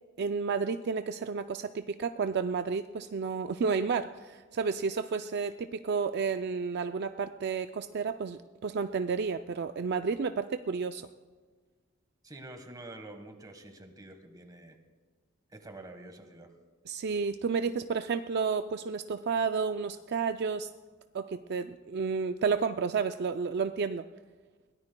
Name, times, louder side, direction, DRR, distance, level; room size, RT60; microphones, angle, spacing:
voice 1, 0.2-11.1 16.9-20.7 21.1-24.1, right 5 dB, 55° right, 8 dB, 0.4 m, -31 dB
voice 2, 12.2-14.8 15.5-16.5, right 2 dB, 20° right, 6 dB, 1.4 m, -47 dB
22.5 x 17.5 x 2.3 m, 1.4 s
head